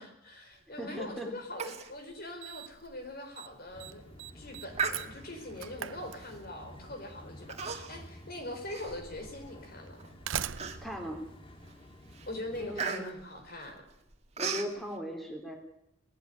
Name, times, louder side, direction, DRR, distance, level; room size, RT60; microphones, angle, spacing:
voice 1, 0.0-4.0 4.3-10.1 12.3-13.8, left 1 dB, 50° left, 5 dB, 4.8 m, -42 dB
voice 2, 0.8-1.3 10.8-11.2 12.6-13.2 14.4-15.6, equal, ahead, 2 dB, 3.2 m, -38 dB
Human voice, 1.6-1.9 2.2-2.3 2.8-3.0 3.5-3.8 4.7-5.5 6.2-6.5 7.5-8.1 8.5-9.5 10.0-10.1 10.6-11.1 11.6-11.8 12.1-14.7, right 5 dB, 35° right, 1.9 m, -37 dB
Slam, 1.7-1.8 2.4-2.9 3.1-3.5 3.8-6.7 7.8-7.9 8.8-8.9 9.9-12.2, right 9 dB, 80° right, 0.7 m, -41 dB
sound 1, 3.7-12.8, equal, 25° left, 1.9 m, -51 dB
19.5 x 15.0 x 9.5 m, 0.80 s
head